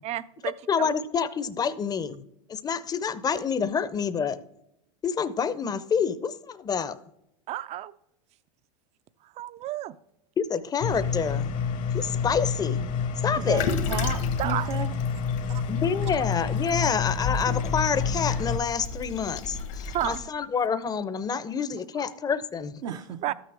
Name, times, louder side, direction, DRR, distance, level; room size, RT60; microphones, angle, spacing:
voice 1, 0.0-0.9 7.5-7.9 9.2-10.0 14.4-14.7 15.5-15.6 19.9-20.3 22.0-22.1 23.2-23.3, right 14 dB, 40° right, 16 dB, 0.5 m, -32 dB
voice 2, 0.7-2.2 2.5-4.4 5.0-7.0 10.4-11.5 11.9-12.8 13.2-13.6 15.7-22.8, left 6 dB, 20° left, 14 dB, 0.6 m, -28 dB
sound 1, 10.8-18.6, left 6 dB, 50° left, 0.9 m, -28 dB
voice 3, 13.4-14.9 22.8-23.3, right 9 dB, 70° right, 4 dB, 0.7 m, -34 dB
Toilet flush, 13.6-20.2, left 4 dB, 65° left, 1.3 m, -34 dB
13.0 x 6.3 x 3.4 m, 0.80 s
hypercardioid pair, 95°, 17 cm